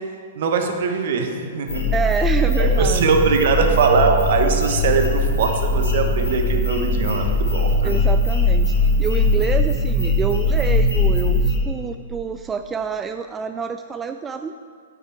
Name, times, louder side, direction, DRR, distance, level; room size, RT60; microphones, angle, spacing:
voice 1, 0.4-1.9 2.6-7.9, right 5 dB, 55° right, 4 dB, 1.2 m, -21 dB
sound 1, 1.7-11.6, left 1 dB, 80° left, 2.3 m, -20 dB
voice 2, 1.9-3.0 7.8-14.6, right 5 dB, 15° right, 8 dB, 0.3 m, -27 dB
sound 2, 2.8-9.4, left 7 dB, 55° left, 1.0 m, -28 dB
9.8 x 8.6 x 4.5 m, 2.2 s
figure-of-eight pair, 110°, 0 cm